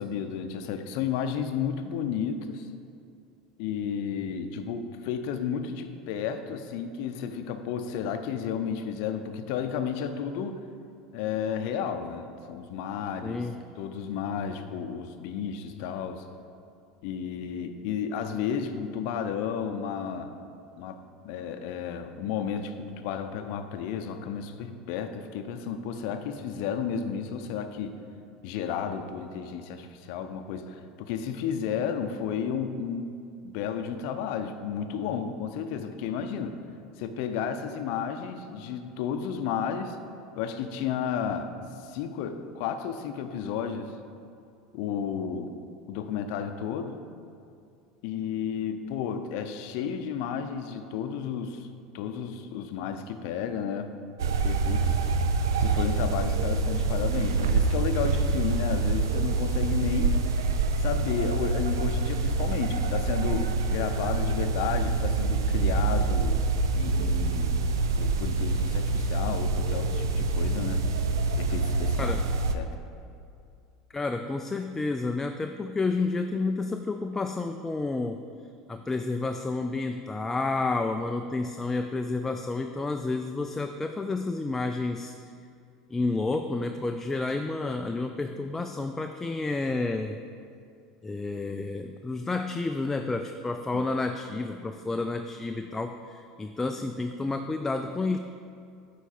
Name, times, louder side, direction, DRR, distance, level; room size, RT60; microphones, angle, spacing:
voice 1, 0.0-2.7 3.6-10.6 11.1-13.5 13.8-16.2 17.0-20.3 20.7-28.0 28.4-33.1 33.4-36.6 37.0-40.0 40.4-41.5 41.8-43.9 44.7-45.5 45.9-47.0 48.0-51.7 51.9-53.9 54.4-55.0 55.6-60.2 60.8-66.4 66.7-67.6 68.0-70.8 71.4-72.1 72.5-72.7 93.7-93.8, left 7 dB, 65° left, 8 dB, 0.5 m, -32 dB
voice 2, 13.2-13.5 72.0-72.2 73.9-78.3 78.7-85.1 85.9-90.2 91.0-98.2, left 3 dB, 15° left, 5 dB, 0.3 m, -30 dB
sound 1, 54.2-72.5, right 3 dB, 85° right, 0.4 m, -26 dB
8.0 x 4.5 x 4.3 m, 2.5 s
hypercardioid pair, 90°, 2 cm